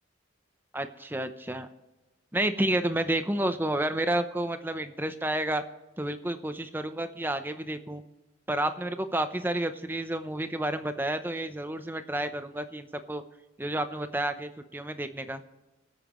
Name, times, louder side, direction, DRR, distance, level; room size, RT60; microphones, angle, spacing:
voice 1, 0.7-1.7 2.3-5.6 6.0-8.0 8.5-13.2 13.6-15.4, right 1 dB, 10° right, 9 dB, 0.7 m, -30 dB
24.0 x 9.0 x 3.1 m, 1.1 s
head